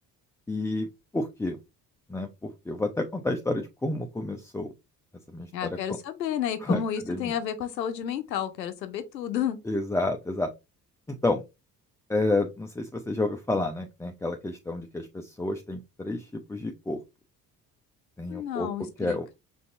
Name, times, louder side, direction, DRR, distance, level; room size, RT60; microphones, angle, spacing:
voice 1, 0.5-0.9 1.1-1.6 2.1-4.7 5.3-6.0 6.6-6.8 7.1-7.3 9.6-10.5 11.1-11.4 12.1-17.0 18.2-18.7 19.0-19.3, left 2 dB, 5° left, 0.5 m, -30 dB
voice 2, 5.5-9.6 18.3-19.3, left 9 dB, 90° left, 0.6 m, -31 dB
5.2 x 2.7 x 3.5 m
figure-of-eight pair, 50°, 49 cm